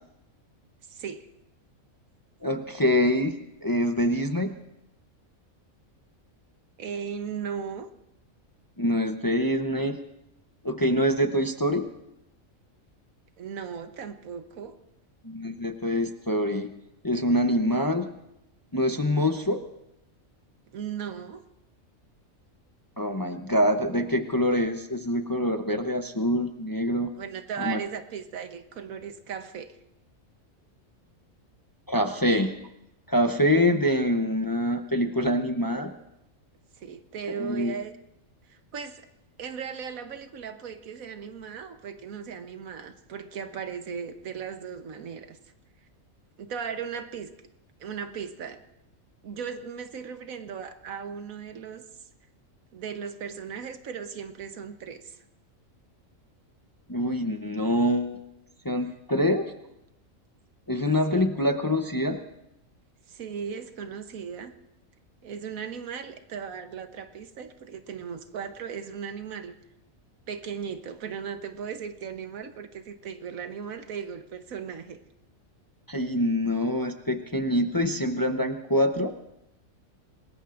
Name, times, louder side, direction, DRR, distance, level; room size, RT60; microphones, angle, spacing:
voice 1, 0.9-1.3 6.8-7.9 9.5-9.6 13.4-14.7 20.7-21.4 27.1-29.8 36.8-37.9 38.5-39.1 39.4-45.4 46.4-47.3 47.8-48.6 49.2-51.8 52.7-55.2 61.1-61.2 63.1-64.5 65.2-69.6 70.3-75.0, right 7 dB, 85° right, 8 dB, 1.4 m, -37 dB
voice 2, 2.4-3.3 3.6-4.5 8.8-10.0 10.6-11.9 15.2-16.7 17.0-18.1 18.7-19.6 23.0-27.1 27.6-27.8 31.9-32.6 33.1-35.9 37.3-37.7 56.9-58.2 58.6-59.5 60.7-62.2 75.9-79.1, equal, 20° left, 6 dB, 0.6 m, -25 dB
26.5 x 20.0 x 2.5 m, 0.84 s
omnidirectional pair, 1.4 m